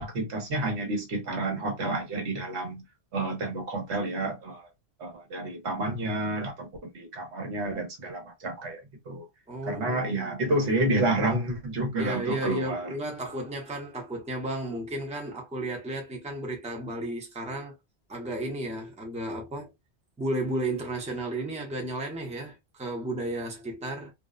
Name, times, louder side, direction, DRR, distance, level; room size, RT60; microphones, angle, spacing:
voice 1, 0.0-2.8 3.1-4.7 5.0-8.8 9.1-9.2 9.6-12.9, right 2 dB, 80° right, 1.2 m, -29 dB
voice 2, 9.5-10.7 11.9-17.7 18.1-19.7 20.2-24.1, right 1 dB, 10° right, 0.6 m, -33 dB
2.5 x 2.1 x 2.3 m
omnidirectional pair, 1.1 m